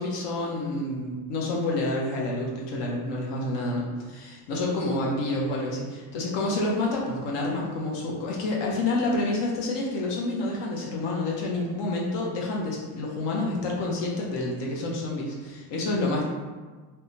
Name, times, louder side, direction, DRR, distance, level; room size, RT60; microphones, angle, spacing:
voice 1, 0.0-16.2, left 2 dB, 65° left, -2 dB, 0.8 m, -28 dB
3.4 x 2.1 x 2.8 m, 1.4 s
cardioid pair, 125°, 47 cm